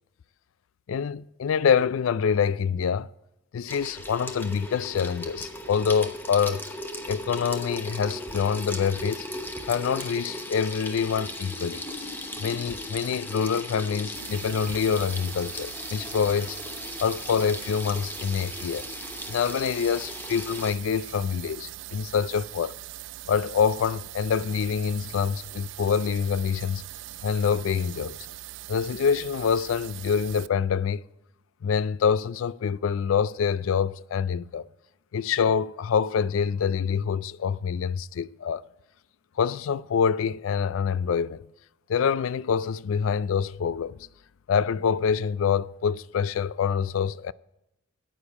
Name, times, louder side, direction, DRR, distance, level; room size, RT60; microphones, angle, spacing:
voice 1, 0.9-3.1 3.5-6.6 7.1-9.3 9.6-11.8 12.4-16.6 17.0-18.9 19.3-22.7 23.3-26.8 27.2-28.2 28.7-31.0 31.6-34.7 35.1-38.6 39.4-41.4 41.9-44.1 44.5-47.3, left 6 dB, 90° left, 0.4 m, -26 dB
Water tap faucet / Sink (filling or washing), 3.7-20.7, left 1 dB, 10° left, 0.9 m, -37 dB
sound 1, 14.1-30.5, right 15 dB, 65° right, 0.3 m, -41 dB
9.8 x 8.9 x 4.7 m
head